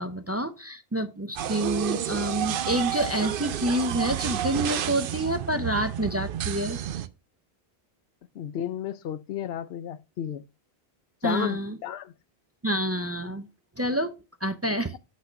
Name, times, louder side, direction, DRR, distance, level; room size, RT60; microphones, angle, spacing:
voice 1, 0.0-6.8 11.2-11.8 12.6-13.5 13.8-15.0, right 1 dB, 25° right, 0.3 m, -28 dB
sound 1, 1.4-7.1, right 10 dB, 65° right, 0.7 m, -30 dB
voice 2, 8.4-10.4 11.2-12.1, left 10 dB, 75° left, 0.8 m, -32 dB
8.2 x 4.2 x 5.1 m
omnidirectional pair, 1.1 m